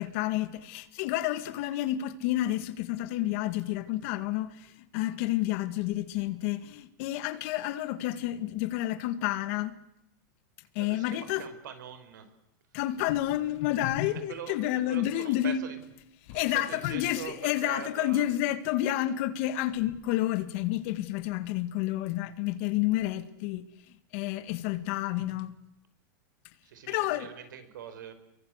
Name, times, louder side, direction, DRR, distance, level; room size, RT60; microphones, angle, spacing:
voice 1, 0.0-9.7 10.8-11.4 12.7-15.7 16.3-23.6 24.1-25.5 26.9-27.3, left 14 dB, 45° left, 1.9 m, -30 dB
voice 2, 10.8-12.3 14.1-14.6 14.9-15.8 16.3-18.3 26.6-28.1, right 8 dB, 85° right, 5.5 m, -43 dB
29.5 x 23.5 x 8.1 m
supercardioid pair, 170°, 10 cm